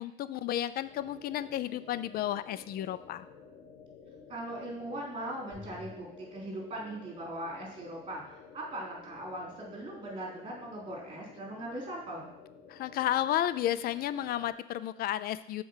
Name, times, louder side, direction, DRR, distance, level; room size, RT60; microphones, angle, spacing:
voice 1, 0.0-3.3 12.7-15.6, left 12 dB, 65° left, 15 dB, 0.4 m, -32 dB
sound 1, 0.8-14.5, left 5 dB, 90° left, 1.2 m, -53 dB
sound 2, 0.8-1.1 5.5-6.0, left 3 dB, ahead, 0.5 m, -47 dB
voice 2, 4.3-8.2 8.5-12.3, right 1 dB, 30° right, -2 dB, 3.2 m, -40 dB
7.3 x 4.5 x 5.7 m, 0.76 s
cardioid pair, 110°, 17 cm